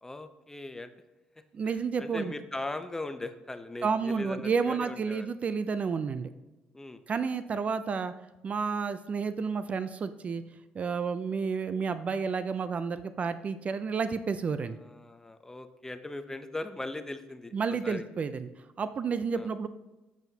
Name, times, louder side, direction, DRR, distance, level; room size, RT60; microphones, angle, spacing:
voice 1, 0.0-0.9 1.6-5.3 6.7-7.0 14.7-18.1 19.3-19.5, left 2 dB, 15° left, 10 dB, 0.6 m, -39 dB
voice 2, 1.5-2.3 3.8-6.3 7.1-8.1 8.4-10.4 10.7-14.8 17.5-18.5 18.8-19.7, right 5 dB, 40° right, 12 dB, 0.4 m, -31 dB
7.9 x 7.1 x 2.8 m, 1.0 s
cardioid pair, 95°, 3 cm